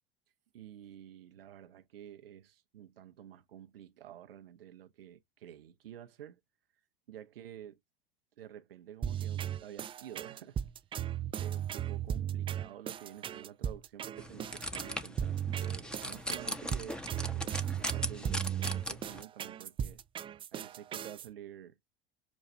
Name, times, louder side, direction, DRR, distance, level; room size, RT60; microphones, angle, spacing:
voice 1, 0.5-6.4 7.1-7.8 8.4-10.6 11.4-17.1 17.3-20.0 20.5-21.8, right 10 dB, 75° right, 0.9 m, -50 dB
sound 1, 9.0-21.3, right 9 dB, 20° right, 0.3 m, -36 dB
sound 2, 14.2-19.2, equal, 5° left, 0.9 m, -39 dB
7.1 x 2.4 x 5.5 m
figure-of-eight pair, 80°, 29 cm